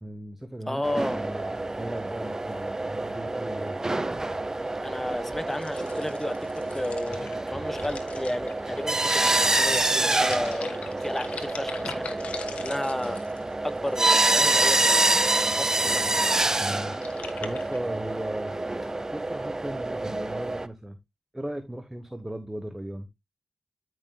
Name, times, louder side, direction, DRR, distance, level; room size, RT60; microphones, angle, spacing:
voice 1, 0.0-3.8 16.6-17.0 17.4-18.6 19.1-21.0 21.3-23.1, right 1 dB, 10° right, 1.1 m, -37 dB
voice 2, 0.7-1.3 4.8-6.4 6.7-12.2 12.6-13.2 13.6-16.0, left 1 dB, 10° left, 1.4 m, -33 dB
sound 1, 0.8-20.7, right 2 dB, 30° right, 0.9 m, -27 dB
sound 2, 5.5-15.1 15.8-17.8, left 5 dB, 85° left, 1.5 m, -42 dB
13.5 x 6.3 x 2.3 m
cardioid pair, 60°, 2 cm